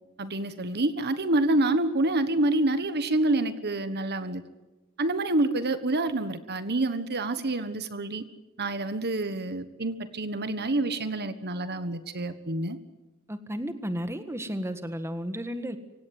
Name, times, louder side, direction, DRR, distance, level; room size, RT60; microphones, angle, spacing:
voice 1, 0.2-4.4 5.0-8.2 8.6-12.8, right 2 dB, 50° right, 11 dB, 1.4 m, -27 dB
voice 2, 13.3-15.8, equal, 10° right, 9 dB, 1.6 m, -33 dB
26.0 x 17.0 x 9.5 m, 1.1 s
head